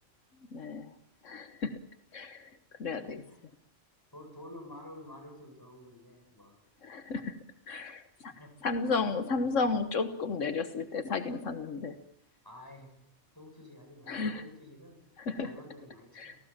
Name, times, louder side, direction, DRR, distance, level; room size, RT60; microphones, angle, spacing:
voice 1, 0.5-0.9 1.2-1.8 2.1-2.5 2.8-3.2 6.8-7.4 7.7-8.3 8.6-12.0 14.1-14.4 15.2-15.5 16.1-16.4, left 4 dB, 85° left, 9 dB, 1.6 m, -33 dB
voice 2, 3.0-3.4 4.1-6.6 7.1-7.2 8.3-8.6 12.4-12.9 13.3-15.0 15.4-16.4, left 1 dB, 15° left, 2 dB, 7.7 m, -50 dB
29.5 x 18.0 x 7.4 m, 0.80 s
omnidirectional pair, 1.3 m